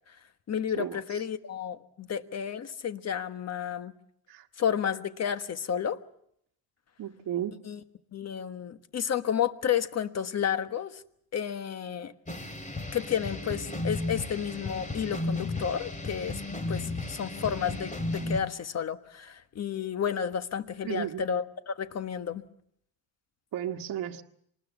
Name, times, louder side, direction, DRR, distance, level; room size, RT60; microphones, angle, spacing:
voice 1, 0.5-3.9 4.6-6.0 7.6-7.8 8.1-11.0 11.3-12.1 12.9-16.4 16.7-22.4, left 8 dB, 40° left, 1.4 m, -31 dB
voice 2, 7.0-7.6 20.8-21.2 23.5-24.2, right 11 dB, 60° right, 1.5 m, -33 dB
sound 1, 12.3-18.4, left 2 dB, 20° left, 2.6 m, -34 dB
25.5 x 20.0 x 7.2 m
cardioid pair, 115°, 39 cm